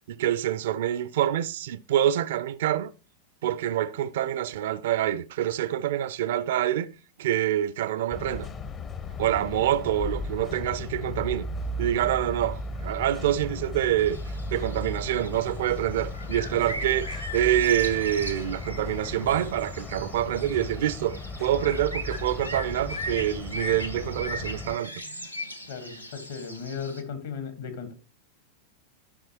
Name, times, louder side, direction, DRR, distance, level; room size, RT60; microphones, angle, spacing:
voice 1, 0.1-2.9 3.4-6.9 7.2-8.5 9.2-11.5 11.8-14.2 14.5-25.3, right 12 dB, 55° right, 0.4 m, -26 dB
sound 1, 8.1-24.8, left 2 dB, 25° left, 0.6 m, -36 dB
sound 2, 14.0-27.0, equal, 90° left, 0.8 m, -39 dB
voice 2, 16.5-17.0 21.5-21.7 25.7-27.9, left 6 dB, 60° left, 1.6 m, -37 dB
12.0 x 5.8 x 2.9 m
figure-of-eight pair, 90°, 0 cm